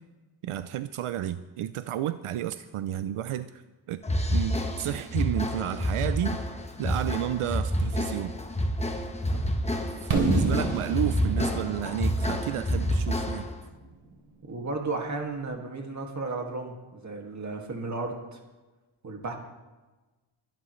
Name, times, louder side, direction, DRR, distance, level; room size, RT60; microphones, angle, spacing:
voice 1, 0.4-3.6 3.9-4.0 4.3-6.4 6.8-8.4 10.0-13.5, right 12 dB, 85° right, 12 dB, 0.6 m, -31 dB
sound 1, 4.0-13.6, equal, 15° left, 1.1 m, -28 dB
Fireworks, 10.1-14.0, right 3 dB, 70° right, 3.3 m, -30 dB
voice 2, 14.5-18.4 19.0-19.3, right 3 dB, 35° right, 2 dB, 2.1 m, -34 dB
22.5 x 11.5 x 3.2 m, 1.2 s
wide cardioid pair, 150°, 50 cm